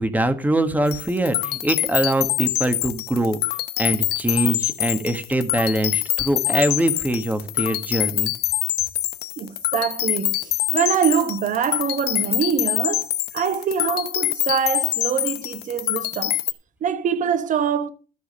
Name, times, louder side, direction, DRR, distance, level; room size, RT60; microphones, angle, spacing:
voice 1, 0.0-3.4 3.8-8.3, right 1 dB, 10° right, 1.5 m, -23 dB
sound 1, 0.9-16.5, left 14 dB, 70° left, 0.7 m, -25 dB
voice 2, 9.4-16.4 16.8-17.9, right 7 dB, 50° right, 1.1 m, -24 dB
13.0 x 4.9 x 6.8 m
cardioid pair, 110°, 17 cm